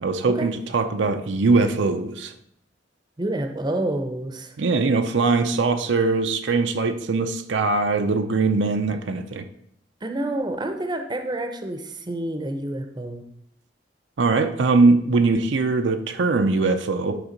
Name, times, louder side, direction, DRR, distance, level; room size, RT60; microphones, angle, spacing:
voice 1, 0.0-2.3 4.6-9.4 14.2-17.2, right 3 dB, 75° right, 7 dB, 0.6 m, -21 dB
voice 2, 3.2-4.5 10.0-13.2, right 1 dB, 25° right, 6 dB, 0.7 m, -28 dB
10.0 x 3.6 x 5.1 m, 0.72 s
head